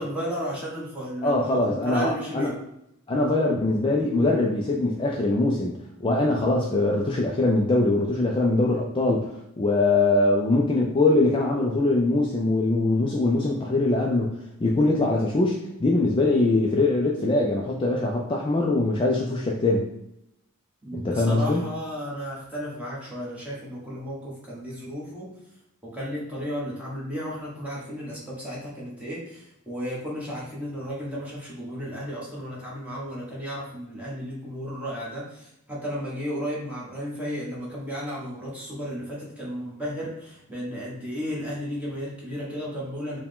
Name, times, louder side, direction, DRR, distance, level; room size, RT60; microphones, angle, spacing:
voice 1, 0.0-2.5 20.8-25.3 25.8-43.2, equal, 5° right, -7 dB, 1.2 m, -34 dB
voice 2, 1.2-2.5 3.1-5.7 6.0-19.9 20.9-21.6, left 2 dB, 25° left, -1 dB, 0.3 m, -22 dB
4.6 x 2.2 x 3.6 m, 0.84 s
head